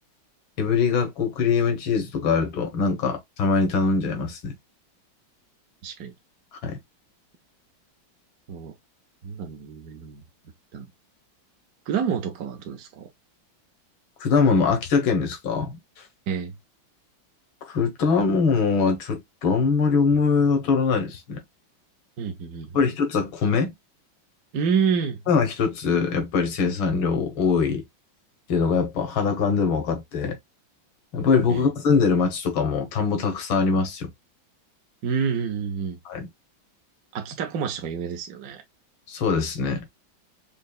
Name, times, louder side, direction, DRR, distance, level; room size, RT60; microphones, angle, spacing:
voice 1, 0.6-4.5 6.6-6.8 14.2-15.8 17.7-21.4 22.7-23.7 25.3-27.8 28.5-30.4 31.1-34.1 36.1-36.3 39.1-39.8, left 5 dB, 85° left, 2.1 m, -22 dB
voice 2, 5.8-6.1 8.5-8.7 9.2-10.2 10.7-10.9 11.9-13.1 16.3-16.5 22.2-22.9 24.5-25.2 31.5-31.6 35.0-36.0 37.1-38.6, right 6 dB, 60° right, 1.0 m, -28 dB
5.4 x 2.8 x 2.3 m
omnidirectional pair, 2.2 m